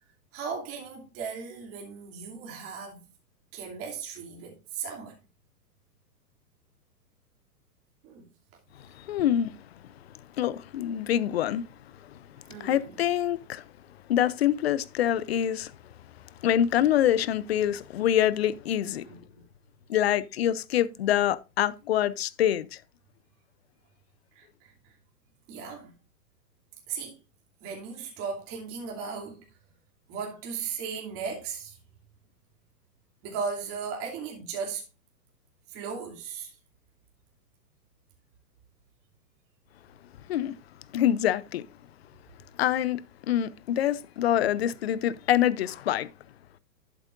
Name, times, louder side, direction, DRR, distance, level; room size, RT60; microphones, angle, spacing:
voice 1, 0.3-3.1 3.5-5.1 8.0-8.3 12.5-13.0 19.1-19.5 24.3-24.9 25.5-26.0 26.9-27.2 27.6-29.4 30.1-31.8 33.2-34.8 35.7-36.5, right 5 dB, 25° right, 2.8 m, -37 dB
voice 2, 9.0-9.6 10.4-11.6 12.6-13.6 14.1-15.7 16.4-19.0 19.9-22.8 40.3-40.5 40.9-41.6 42.6-46.1, left 11 dB, 40° left, 0.6 m, -25 dB
11.0 x 8.3 x 2.5 m
hypercardioid pair, 140°, 49 cm